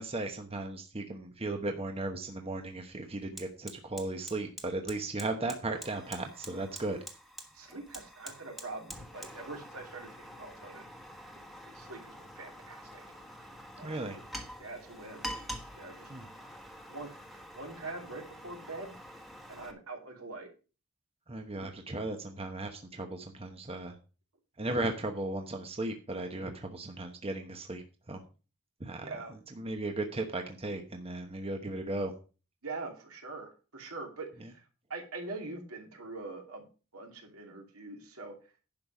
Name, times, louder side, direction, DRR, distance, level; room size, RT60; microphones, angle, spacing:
voice 1, 0.0-7.0 13.8-14.2 16.1-16.2 21.3-23.9 24.6-28.2 28.8-29.1 29.6-32.1, right 2 dB, 25° right, 4 dB, 1.0 m, -36 dB
Fire, 2.2-2.4 2.7-19.7, equal, ahead, 1.3 m, -47 dB
voice 2, 7.5-10.9 11.6-13.0 13.8-14.0 14.6-15.2 15.7-16.1 16.9-18.9 19.5-20.5 29.0-29.4 32.6-34.6 34.9-36.7 36.9-38.4, right 3 dB, 75° right, 1 dB, 2.9 m, -43 dB
10.5 x 5.4 x 5.9 m, 0.34 s
head